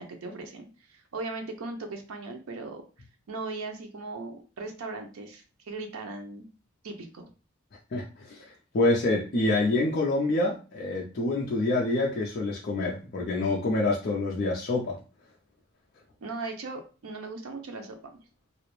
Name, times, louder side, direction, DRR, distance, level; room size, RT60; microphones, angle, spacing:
voice 1, 0.0-2.8 3.3-6.5 6.8-7.3 16.2-18.0, right 3 dB, 80° right, 4 dB, 0.5 m, -38 dB
voice 2, 7.9-8.4 8.7-15.0, left 2 dB, 45° left, -3 dB, 0.4 m, -26 dB
2.3 x 2.0 x 3.0 m, 0.35 s
head